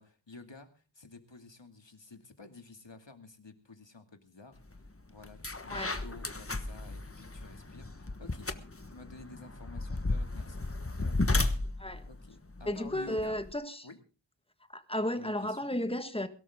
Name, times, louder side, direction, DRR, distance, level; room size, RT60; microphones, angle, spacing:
voice 1, 0.0-4.6 5.1-8.5 8.9-10.6 11.0-11.3 12.1-13.4 13.8-14.0 15.2-15.7, left 3 dB, 70° left, 2.5 m, -51 dB
sound 1, 4.7-4.9 5.2-13.5, left 2 dB, 30° left, 1.3 m, -34 dB
voice 2, 5.7-6.0 11.8-12.0 12.7-13.9 14.7-16.3, left 1 dB, 10° left, 1.6 m, -33 dB
22.5 x 12.5 x 3.7 m
wide cardioid pair, 45°, 45 cm